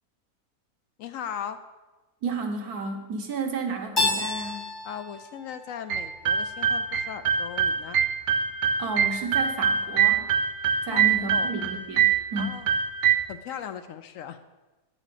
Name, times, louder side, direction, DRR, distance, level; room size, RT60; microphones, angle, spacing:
voice 1, 1.0-1.6 4.8-8.0 10.9-11.6 12.4-12.7 13.3-14.4, left 9 dB, 70° left, 9 dB, 0.9 m, -38 dB
voice 2, 2.2-4.7 8.8-10.3 10.8-12.5, right 3 dB, 85° right, 3 dB, 1.6 m, -32 dB
Keyboard (musical), 4.0-6.8, left 2 dB, 15° left, 1.4 m, -31 dB
sound 1, 5.9-13.2, right 7 dB, 65° right, 0.8 m, -24 dB
9.8 x 4.1 x 7.4 m, 1.1 s
omnidirectional pair, 1.6 m